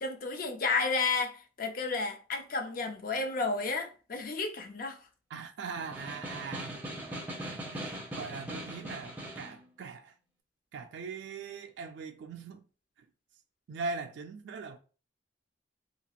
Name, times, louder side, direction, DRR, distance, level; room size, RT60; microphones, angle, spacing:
voice 1, 0.0-5.0, left 4 dB, 50° left, 0.5 m, -32 dB
voice 2, 5.3-6.8 7.1-10.1 10.7-12.6 13.0-13.1 13.7-14.8, right 4 dB, 70° right, 0.3 m, -41 dB
Snare drum, 5.8-9.6, right 1 dB, 10° right, 0.5 m, -40 dB
2.8 x 2.4 x 2.8 m
head